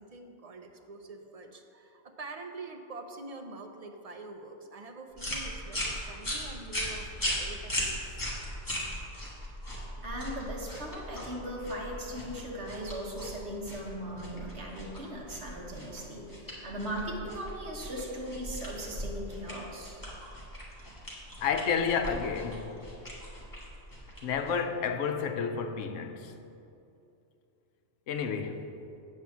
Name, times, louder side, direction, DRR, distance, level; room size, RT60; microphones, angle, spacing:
voice 1, 0.0-8.2, right 3 dB, 45° right, 0.5 m, -45 dB
sound 1, 5.2-24.7, equal, 15° left, 1.6 m, -38 dB
voice 2, 10.0-20.0, equal, 60° right, 1.6 m, -38 dB
voice 3, 21.4-22.7 24.2-26.4 28.1-28.7, left 6 dB, 85° left, 1.0 m, -30 dB
8.3 x 4.6 x 7.2 m
omnidirectional pair, 1.3 m